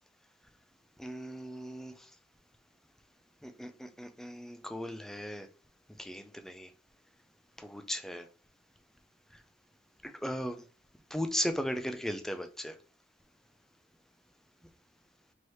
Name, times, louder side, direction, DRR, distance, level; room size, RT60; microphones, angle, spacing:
voice 1, 1.0-2.1 3.4-5.5 6.0-6.7 7.6-8.3 10.0-10.6 11.1-12.8, equal, ahead, 0.3 m, -37 dB
4.7 x 2.8 x 3.1 m
head